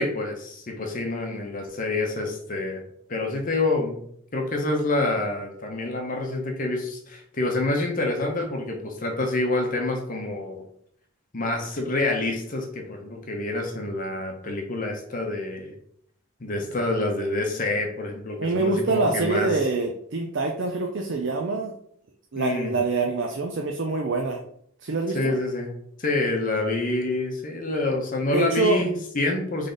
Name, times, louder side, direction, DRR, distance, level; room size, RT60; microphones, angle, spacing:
voice 1, 0.0-2.8 3.1-10.6 11.3-15.7 16.4-19.5 22.4-22.7 25.1-25.7 26.0-29.7, left 2 dB, 40° left, 2 dB, 0.8 m, -27 dB
voice 2, 18.4-21.7 22.3-24.4 24.8-25.4 28.3-28.8, right 3 dB, 55° right, 2 dB, 0.5 m, -25 dB
3.9 x 3.3 x 3.8 m, 0.67 s
head